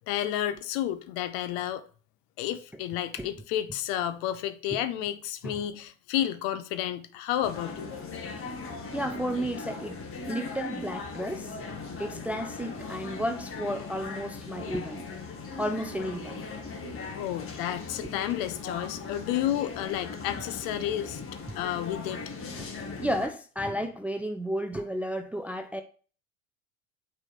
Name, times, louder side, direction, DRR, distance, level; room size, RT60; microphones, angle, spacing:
voice 1, 0.1-1.8 2.4-7.9 17.2-21.2 21.5-22.2, left 11 dB, 55° left, 0.9 m, -31 dB
sound 1, 7.4-23.3, left 4 dB, 35° left, 1.6 m, -39 dB
voice 2, 8.9-11.6 12.0-15.1 15.6-16.5 22.6-22.7 23.0-25.8, equal, 5° right, 0.5 m, -33 dB
8.8 x 3.6 x 4.3 m
figure-of-eight pair, 75°, 40 cm